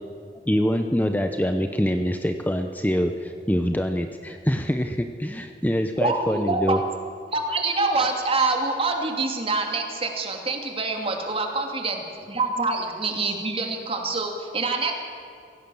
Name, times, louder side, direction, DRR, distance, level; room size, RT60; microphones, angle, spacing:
voice 1, 0.5-6.8, equal, 10° left, 6 dB, 0.8 m, -24 dB
voice 2, 6.0-6.8 7.3-14.9, right 3 dB, 35° right, 3 dB, 2.8 m, -26 dB
25.0 x 17.0 x 7.2 m, 2.6 s
head